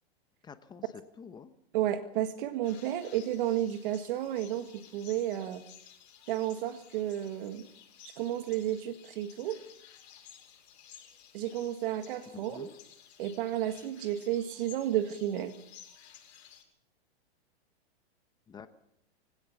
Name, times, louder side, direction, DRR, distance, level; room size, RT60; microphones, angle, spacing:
voice 1, 0.4-0.8 1.2-1.5 12.3-12.7 18.5-18.7, left 6 dB, 15° left, 11 dB, 1.0 m, -48 dB
voice 2, 1.7-5.6 6.3-7.7 8.0-9.6 11.3-12.7 13.2-15.5, right 12 dB, 50° right, 9 dB, 1.7 m, -32 dB
sound 1, 2.6-16.6, left 9 dB, 45° left, 7.4 m, -55 dB
23.5 x 17.0 x 7.1 m, 0.74 s
hypercardioid pair, 145°, 32 cm